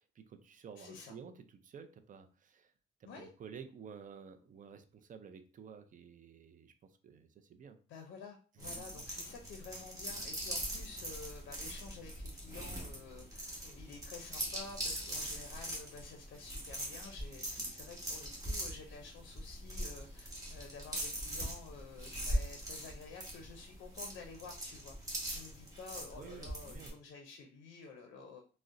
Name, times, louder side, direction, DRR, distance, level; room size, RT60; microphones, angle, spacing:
voice 1, 0.0-2.7 3.2-6.7 7.0-7.8 8.6-9.0 26.2-27.0, right 6 dB, 40° right, 9 dB, 0.4 m, -52 dB
voice 2, 0.8-1.1 3.1-3.3 7.9-25.0 25.3-28.4, left 4 dB, 75° left, 4 dB, 0.5 m, -51 dB
sound 1, 8.6-26.9, right 1 dB, 15° right, 1.3 m, -41 dB
3.7 x 2.0 x 2.4 m, 0.38 s
cardioid pair, 90°, 20 cm